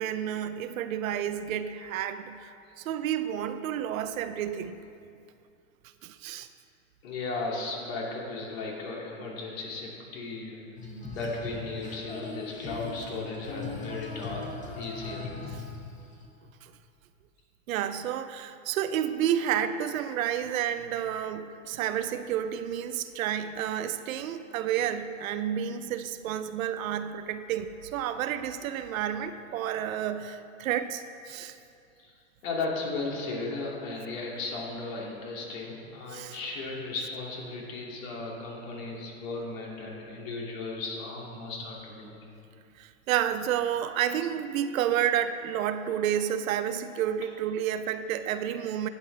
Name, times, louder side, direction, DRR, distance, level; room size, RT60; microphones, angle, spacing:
voice 1, 0.0-4.8 6.0-6.5 15.5-15.6 16.6-16.7 17.7-31.5 36.1-36.4 42.8-48.9, right 10 dB, 75° right, 11 dB, 0.6 m, -30 dB
voice 2, 7.0-10.6 11.1-14.4 14.7-15.4 32.0-32.1 32.4-42.2, left 3 dB, 70° left, -2 dB, 2.6 m, -36 dB
Female singing, 10.8-16.2, left 3 dB, 20° left, 1.4 m, -39 dB
11.0 x 9.0 x 3.3 m, 2.6 s
supercardioid pair, 135°, 42 cm